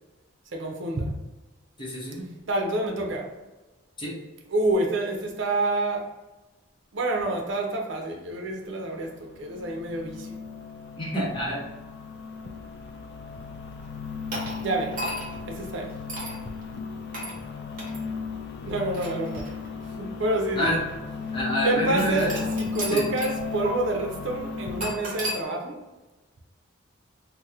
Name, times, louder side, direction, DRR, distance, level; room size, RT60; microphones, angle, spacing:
voice 1, 0.5-1.1 2.5-3.3 4.5-6.1 6.9-10.3 14.6-15.0 15.5-15.9 18.6-19.6 20.0-20.7 21.6-25.8, right 2 dB, 65° right, 1 dB, 0.5 m, -28 dB
voice 2, 1.8-2.3 4.0-4.2 11.0-11.6 20.6-20.8 21.3-22.4 22.9-23.0, equal, 25° left, -5 dB, 0.8 m, -27 dB
sound 1, 8.5-25.0, left 5 dB, 50° left, 0.4 m, -36 dB
sound 2, 14.3-15.4 16.1-16.4 17.1-17.4 17.8-18.0 18.7-19.8 20.6-20.7 22.0-23.4 23.6-23.7 24.8-25.4, right 1 dB, 40° right, 0.9 m, -34 dB
2.9 x 2.0 x 3.5 m, 1.1 s
head